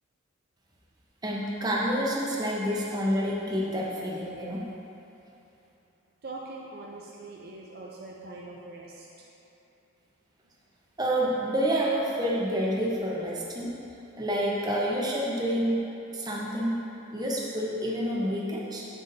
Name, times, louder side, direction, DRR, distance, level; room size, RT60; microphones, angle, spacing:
voice 1, 1.2-4.6 11.0-13.7 14.2-15.8 16.1-16.8 17.1-18.9, equal, 20° right, -4 dB, 0.8 m, -28 dB
voice 2, 6.2-9.3, right 2 dB, 45° right, -3 dB, 0.5 m, -42 dB
7.9 x 7.0 x 2.6 m, 2.9 s
head